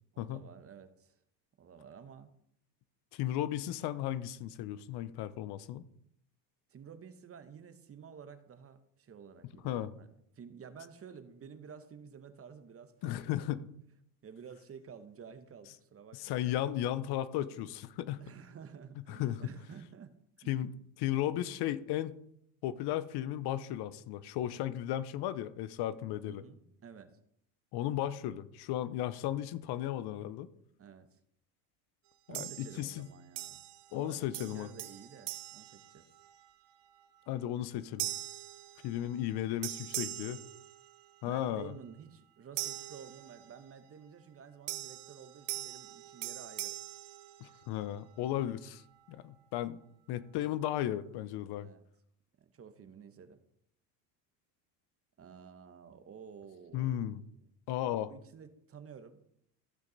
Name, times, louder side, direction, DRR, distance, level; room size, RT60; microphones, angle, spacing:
voice 1, 0.1-1.2 1.6-2.3 6.7-10.1 10.3-13.5 14.2-16.4 18.2-20.7 26.3-27.1 30.8-31.2 32.3-33.6 33.9-36.1 41.2-46.7 51.6-51.8 52.5-53.4 55.2-57.1 58.1-59.2, right 6 dB, 30° right, 11 dB, 1.0 m, -51 dB
voice 2, 3.1-5.9 9.6-9.9 13.0-13.7 16.1-18.2 19.1-19.5 20.5-20.7 21.0-22.2 22.6-26.4 27.7-30.5 32.3-33.1 33.9-34.7 37.3-38.1 38.8-40.4 41.2-41.7 47.4-48.8 49.1-49.8 50.1-51.7 56.7-57.2 57.7-58.1, left 12 dB, 55° left, 15 dB, 0.7 m, -35 dB
sound 1, 32.3-33.0 33.4-34.1 34.3-36.5 37.0-37.3 38.0-39.3 39.6-41.3 42.6-43.7 44.7-47.9, right 15 dB, 60° right, 0.9 m, -42 dB
15.0 x 5.2 x 4.0 m, 0.72 s
supercardioid pair, 90°, 48 cm